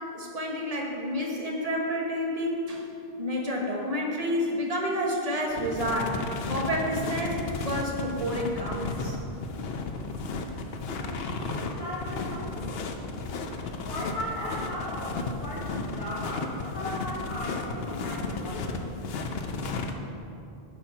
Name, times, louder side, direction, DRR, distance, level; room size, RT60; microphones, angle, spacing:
voice 1, 0.0-2.8 3.2-6.2 6.5-9.2, equal, 35° right, -2 dB, 1.3 m, -29 dB
sound 1, 5.5-19.9, left 3 dB, 75° left, 0.9 m, -34 dB
voice 2, 10.9-11.3 11.7-12.9 13.8-18.8, left 1 dB, 55° left, -9 dB, 1.5 m, -37 dB
10.0 x 4.3 x 5.8 m, 2.7 s
omnidirectional pair, 1.1 m